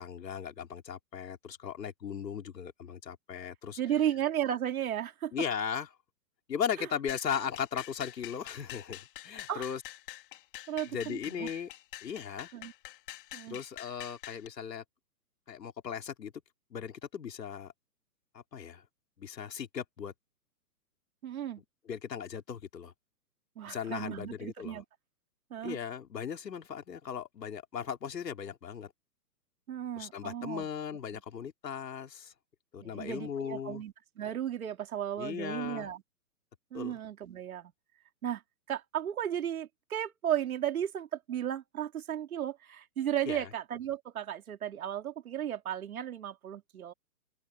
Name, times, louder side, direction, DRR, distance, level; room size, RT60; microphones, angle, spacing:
voice 1, 0.0-3.8 5.3-5.9 6.5-9.8 10.9-11.7 12.0-12.5 13.5-14.8 15.5-16.3 16.7-17.7 18.3-18.8 19.2-20.1 21.9-22.9 23.6-24.8 25.6-28.9 30.0-32.3 32.7-33.8 35.2-35.9 36.7-37.0 43.3-43.5, left 7 dB, 80° left, 4.1 m, -37 dB
voice 2, 3.8-5.3 6.8-6.9 9.5-9.7 10.7-11.5 12.5-12.7 13.3-13.6 21.2-21.6 23.6-24.8 25.5-25.8 29.7-30.7 32.8-36.0 36.7-37.7 38.2-38.4 38.7-46.9, right 10 dB, 60° right, 3.0 m, -34 dB
sound 1, 7.1-14.5, left 15 dB, 30° left, 3.5 m, -46 dB
open air
hypercardioid pair, 170°, 48 cm